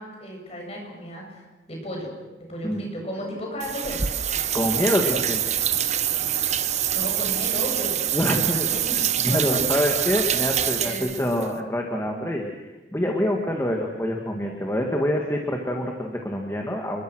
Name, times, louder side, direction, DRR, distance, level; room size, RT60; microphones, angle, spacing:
voice 1, 0.0-2.1 2.5-4.0 6.9-8.0 8.6-9.9 10.8-11.1, equal, 35° left, 0 dB, 7.7 m, -34 dB
sound 1, 3.6-11.5, right 10 dB, 40° right, 1.1 m, -25 dB
voice 2, 4.5-5.4 8.1-8.7 9.2-12.5 12.9-17.0, equal, 15° left, 1 dB, 2.0 m, -25 dB
29.5 x 22.5 x 6.3 m, 1.1 s
head